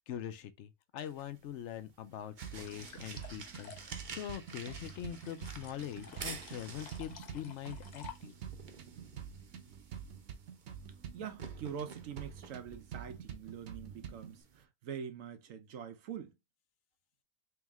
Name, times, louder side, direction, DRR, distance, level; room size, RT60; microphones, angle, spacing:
voice 1, 0.1-8.3, left 10 dB, 70° left, 0.9 m, -43 dB
sound 1, 1.0-14.6, right 5 dB, 45° right, 0.7 m, -51 dB
sound 2, 2.4-8.6, left 6 dB, 45° left, 0.6 m, -54 dB
sound 3, 2.4-14.4, right 8 dB, 65° right, 1.0 m, -48 dB
voice 2, 11.1-16.4, right 8 dB, 85° right, 1.1 m, -44 dB
3.5 x 3.1 x 3.5 m
omnidirectional pair, 1.3 m